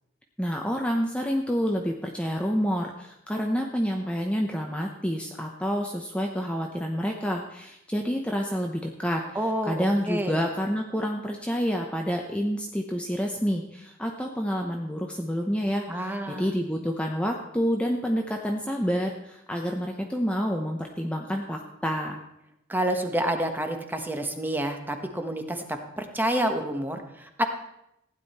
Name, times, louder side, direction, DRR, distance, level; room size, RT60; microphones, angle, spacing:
voice 1, 0.4-9.2 9.6-22.2, equal, 5° left, 1 dB, 0.9 m, -28 dB
voice 2, 9.3-10.4 15.9-16.5 22.7-27.4, right 1 dB, 10° right, 5 dB, 1.2 m, -28 dB
15.5 x 10.0 x 4.3 m, 0.84 s
head